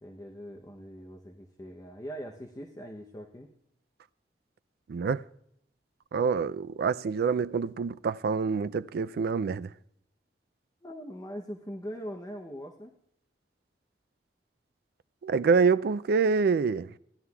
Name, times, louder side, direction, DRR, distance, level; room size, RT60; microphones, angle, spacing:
voice 1, 0.0-3.5 10.8-13.0, equal, 20° left, 0.7 m, -41 dB
voice 2, 4.9-5.2 6.1-9.7 15.2-16.9, right 5 dB, 60° right, 0.3 m, -26 dB
16.5 x 11.0 x 2.3 m
head